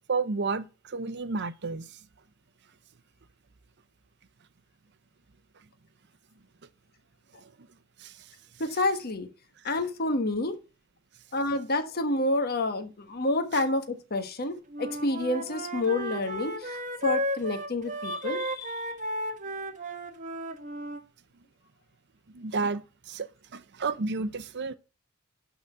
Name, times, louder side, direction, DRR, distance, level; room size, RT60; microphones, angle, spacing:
voice 1, 0.0-2.0 7.4-7.5 8.0-8.3 13.5-13.6 22.3-24.8, right 4 dB, 55° right, 0.7 m, -32 dB
voice 2, 8.6-9.3 9.6-10.6 11.3-18.9, left 2 dB, 45° left, 1.3 m, -29 dB
Wind instrument woodwind instrument, 14.7-21.0, equal, 35° right, 1.3 m, -34 dB
11.5 x 4.0 x 7.4 m
head